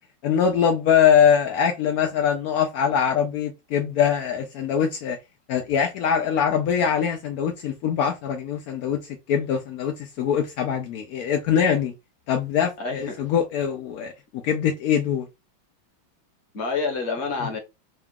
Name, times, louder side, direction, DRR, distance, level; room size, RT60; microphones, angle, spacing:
voice 1, 0.2-5.2 5.5-9.0 9.3-11.9 12.3-15.3, left 8 dB, 75° left, 0.8 m, -22 dB
voice 2, 12.8-13.2 16.5-17.6, left 4 dB, 45° left, 1.0 m, -28 dB
3.8 x 2.3 x 3.5 m
omnidirectional pair, 2.2 m